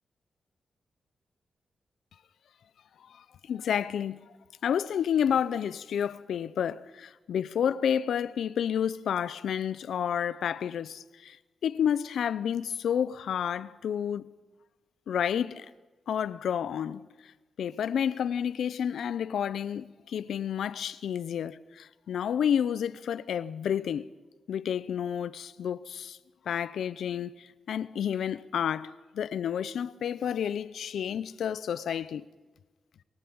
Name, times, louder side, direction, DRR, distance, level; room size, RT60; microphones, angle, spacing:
voice 1, 3.2-4.2 4.6-11.4 11.6-14.3 15.1-15.7 16.1-17.1 17.6-24.1 24.5-26.2 26.5-32.2, left 8 dB, 85° left, 0.7 m, -30 dB
28.5 x 15.0 x 8.8 m
cardioid pair, 80°, 0 cm